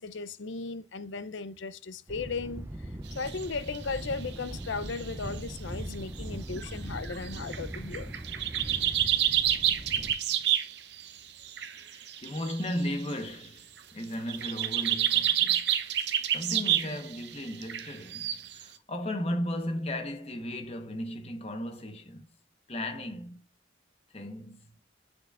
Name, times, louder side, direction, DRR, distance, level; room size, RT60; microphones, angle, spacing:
voice 1, 0.0-8.1, left 4 dB, 70° left, 0.6 m, -36 dB
Thunder, 2.1-10.1, right 1 dB, 15° right, 0.4 m, -40 dB
sound 1, 3.2-3.4 3.7-4.1 4.6-5.1 5.6-5.7 6.6-6.7 7.0-11.1 11.4-13.1 14.0-18.6, right 11 dB, 60° right, 0.7 m, -29 dB
voice 2, 11.7-15.7 16.3-22.3 22.7-23.4 24.1-24.8, left 1 dB, 30° left, 1.0 m, -36 dB
8.0 x 6.8 x 2.4 m
head